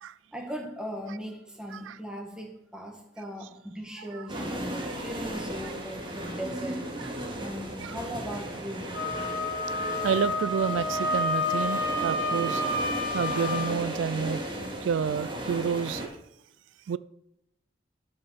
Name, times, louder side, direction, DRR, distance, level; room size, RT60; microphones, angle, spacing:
voice 1, 0.3-6.8 7.4-8.9, equal, 5° right, 0 dB, 1.8 m, -38 dB
voice 2, 4.0-4.3 4.9-5.0 5.6-5.7 7.8-8.0 9.2-9.7 10.0-12.6 13.1-14.4 14.8-16.1 16.9-17.0, right 7 dB, 90° right, 18 dB, 0.3 m, -30 dB
sound 1, 4.3-16.1, right 1 dB, 25° right, 2.1 m, -35 dB
Wind instrument woodwind instrument, 8.9-13.7, left 2 dB, 70° left, 2.0 m, -29 dB
12.0 x 5.3 x 5.8 m, 0.82 s
head